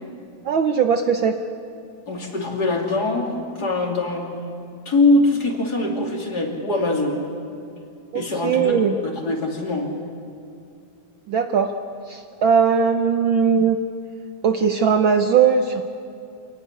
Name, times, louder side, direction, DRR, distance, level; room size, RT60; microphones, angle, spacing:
voice 1, 0.4-1.3 8.1-8.9 11.3-11.7 12.1-13.8 14.4-15.8, right 6 dB, 90° right, 6 dB, 1.1 m, -19 dB
voice 2, 2.1-3.3 3.6-4.3 4.8-7.2 8.1-9.9, left 2 dB, 30° left, 1 dB, 3.2 m, -22 dB
27.0 x 17.5 x 9.9 m, 2.5 s
omnidirectional pair, 3.4 m